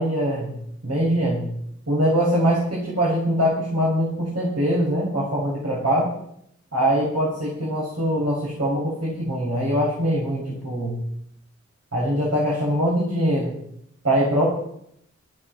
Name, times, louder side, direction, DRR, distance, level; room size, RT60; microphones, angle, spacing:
voice 1, 0.0-1.5 1.9-6.1 6.7-11.0 11.9-13.6 14.0-14.4, equal, 55° right, -6 dB, 7.1 m, -23 dB
14.0 x 13.5 x 6.2 m, 0.71 s
wide cardioid pair, 55°, 30 cm